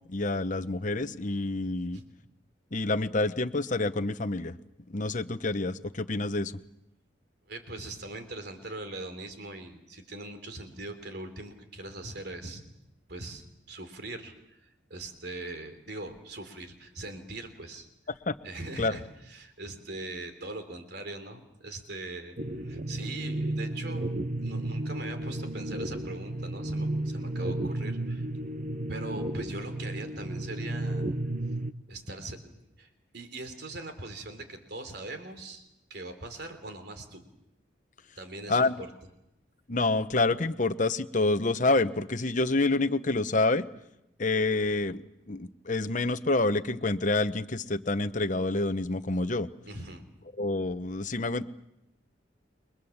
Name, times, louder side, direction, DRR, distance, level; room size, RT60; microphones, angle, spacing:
voice 1, 0.1-2.0 2.7-4.6 4.9-6.5 18.3-18.4 18.8-19.0 38.5-38.8 39.7-43.6 44.2-45.0 45.3-49.5 50.4-51.5, left 2 dB, 40° left, 12 dB, 1.0 m, -27 dB
voice 2, 7.5-12.6 13.1-14.3 14.6-17.9 18.4-22.4 22.6-24.1 24.4-28.3 28.9-31.0 31.9-32.5 32.8-37.2 38.2-38.9 49.7-50.0, right 2 dB, 60° right, 7 dB, 3.4 m, -41 dB
sound 1, 22.4-31.7, right 1 dB, 40° right, 0.9 m, -33 dB
30.0 x 23.0 x 7.2 m, 0.85 s
head